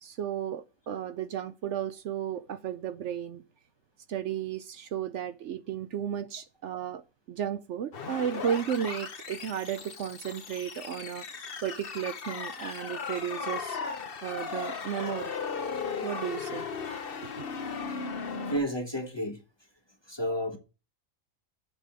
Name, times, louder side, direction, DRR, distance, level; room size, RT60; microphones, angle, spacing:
voice 1, 0.0-3.4 4.1-13.8 14.2-15.3 16.0-16.7 17.2-17.4, right 9 dB, 70° right, 0.9 m, -34 dB
sound 1, 7.9-18.6, left 5 dB, 50° left, 1.0 m, -36 dB
voice 2, 18.5-19.4 20.1-20.6, equal, 20° left, 1.1 m, -31 dB
7.5 x 5.2 x 7.4 m
omnidirectional pair, 1.4 m